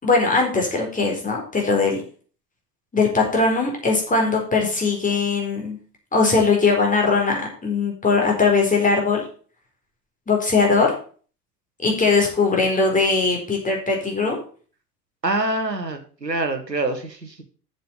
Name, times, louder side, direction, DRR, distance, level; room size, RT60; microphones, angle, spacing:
voice 1, 0.0-2.0 2.9-5.8 6.1-9.2 10.3-10.9 11.8-14.4, left 4 dB, 15° left, 0 dB, 4.4 m, -20 dB
voice 2, 15.2-17.4, right 2 dB, 90° right, 7 dB, 1.3 m, -25 dB
7.8 x 7.1 x 6.8 m, 0.41 s
figure-of-eight pair, 75°, 49 cm